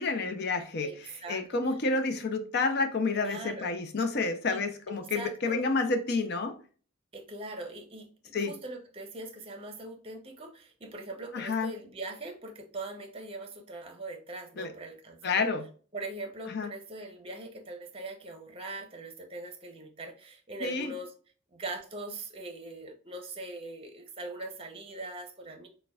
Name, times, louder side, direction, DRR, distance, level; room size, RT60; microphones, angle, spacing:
voice 1, 0.0-6.5 8.3-8.5 11.3-11.7 14.6-14.7 15.2-15.6 16.5-16.7 20.6-20.9, left 3 dB, 50° left, 0.6 m, -29 dB
voice 2, 0.8-1.4 3.1-3.7 4.5-4.6 4.9-5.7 7.1-15.5 15.9-21.1 21.5-25.7, right 2 dB, 25° right, 0.7 m, -41 dB
6.5 x 2.2 x 2.3 m
head